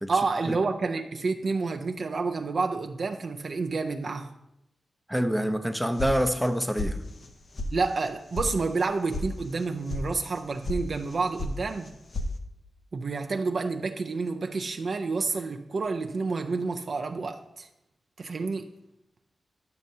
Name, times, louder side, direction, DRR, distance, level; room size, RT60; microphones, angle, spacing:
voice 1, 0.1-4.3 7.7-11.9 12.9-17.7 18.2-18.7, right 4 dB, 55° right, 0.4 m, -29 dB
voice 2, 5.1-7.0, equal, ahead, 0.6 m, -26 dB
sound 1, 6.0-6.5 6.8-7.3 7.5-7.7 8.0-8.5 8.8-9.2 9.5-10.0 10.3-10.8 11.1-11.6 11.8-12.3, left 2 dB, 45° left, 0.6 m, -32 dB
10.5 x 6.4 x 2.7 m
wide cardioid pair, 95°, 0 cm